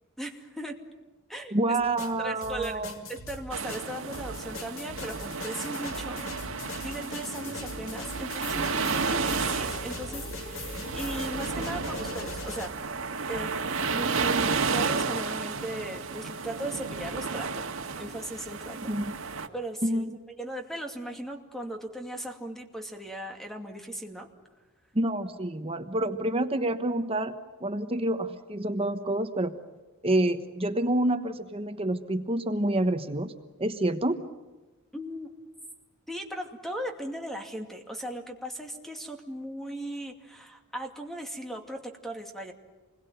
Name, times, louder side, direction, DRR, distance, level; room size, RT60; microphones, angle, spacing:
voice 1, 0.2-0.8 1.3-1.8 2.2-2.8 3.1-6.2 6.5-12.7 13.3-13.6 13.9-17.7 18.0-18.8 19.5-20.1 20.4-24.3 34.9-35.3 36.1-42.5, right 1 dB, ahead, 3 dB, 2.5 m, -37 dB
voice 2, 1.5-2.9 18.8-19.1 19.8-20.1 24.9-29.6 30.0-33.3 33.6-34.2, right 1 dB, 25° right, 8 dB, 1.1 m, -28 dB
sound 1, 1.8-12.7, left 2 dB, 65° left, 2.6 m, -40 dB
sound 2, 3.5-19.5, right 4 dB, 75° right, 1.7 m, -32 dB
28.0 x 21.5 x 9.3 m, 1.2 s
head